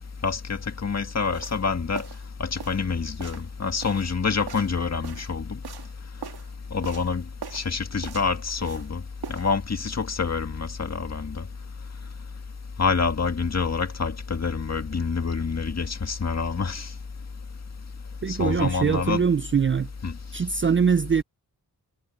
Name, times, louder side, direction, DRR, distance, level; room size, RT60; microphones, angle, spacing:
voice 1, 0.2-2.0 2.4-5.6 6.7-7.2 7.5-9.0 9.3-11.4 12.8-16.9 18.3-19.2 20.0-20.1, left 5 dB, 45° left, 1.9 m, -27 dB
sound 1, 1.3-1.6 1.9-2.2 2.6-2.9 3.2-3.5 3.8-5.3 5.6-5.9 6.2-6.5 6.8-7.1 7.4-7.7 8.0-8.9 9.2-9.5, right 7 dB, 80° right, 2.1 m, -41 dB
voice 2, 18.2-19.9 20.3-21.2, right 6 dB, 35° right, 0.4 m, -22 dB
wide cardioid pair, 155°, 38 cm